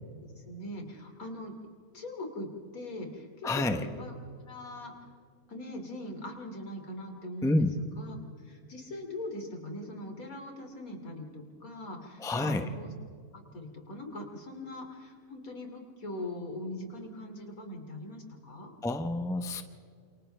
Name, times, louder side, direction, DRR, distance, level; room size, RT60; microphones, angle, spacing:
voice 1, 0.2-1.5 1.9-2.5 2.7-4.1 4.5-4.9 5.5-7.7 8.0-8.2 8.5-12.9 13.3-18.7, left 1 dB, 70° left, 3 dB, 3.3 m, -41 dB
voice 2, 3.4-3.9 7.4-7.7 12.2-12.6 18.8-19.6, left 2 dB, 5° left, 7 dB, 0.8 m, -28 dB
30.0 x 27.5 x 3.4 m, 2.2 s
omnidirectional pair, 1.5 m